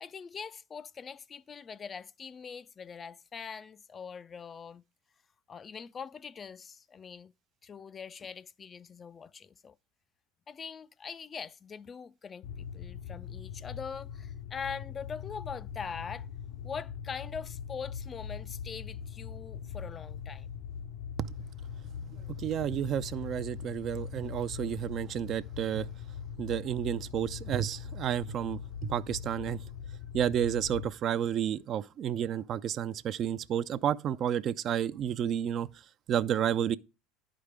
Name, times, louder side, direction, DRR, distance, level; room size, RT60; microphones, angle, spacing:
voice 1, 0.0-4.8 5.5-7.3 7.6-9.7 10.5-16.3 16.6-20.5, left 6 dB, 30° left, 0.3 m, -42 dB
sound 1, 12.4-30.9, left 8 dB, 70° left, 0.6 m, -41 dB
voice 2, 22.1-25.9 26.4-29.6 30.1-35.7 36.1-36.8, right 10 dB, 45° right, 0.4 m, -31 dB
11.0 x 5.0 x 3.4 m
supercardioid pair, 100°, 0 cm